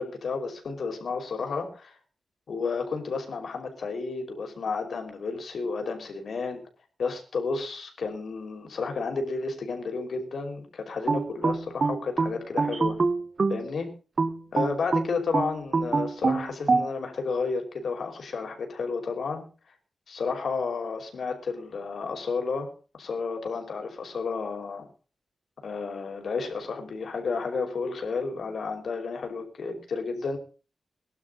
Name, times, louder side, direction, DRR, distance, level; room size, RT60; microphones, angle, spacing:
voice 1, 0.0-2.0 2.5-6.6 7.0-13.0 13.5-13.9 14.5-19.4 20.1-24.9 25.6-30.4, left 4 dB, 65° left, 5 dB, 5.4 m, -32 dB
sound 1, 11.1-13.7 14.2-16.9, right 4 dB, 40° right, 1.3 m, -25 dB
22.5 x 12.0 x 4.0 m, 0.37 s
wide cardioid pair, 165°, 0 cm